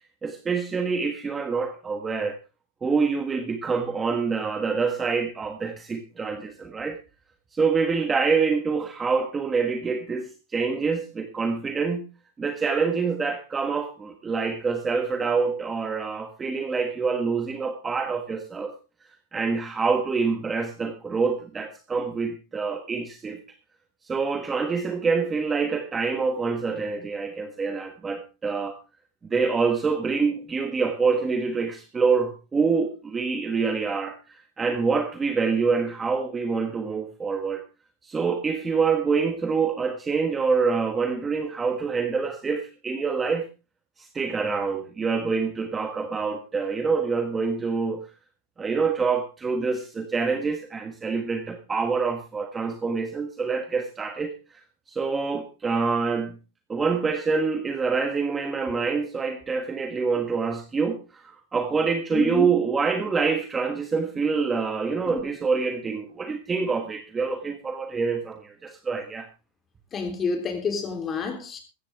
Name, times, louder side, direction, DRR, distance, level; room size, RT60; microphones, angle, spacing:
voice 1, 0.2-2.4 2.8-7.0 7.5-12.1 12.4-18.7 19.3-23.4 24.0-28.8 29.3-37.6 38.0-43.5 44.0-48.1 48.6-54.6 54.9-56.4 56.7-69.3, right 5 dB, 15° right, 1.4 m, -26 dB
voice 2, 62.1-62.5 69.9-71.6, left 5 dB, 20° left, 3.3 m, -28 dB
15.0 x 14.5 x 3.5 m
supercardioid pair, 160°, 0 cm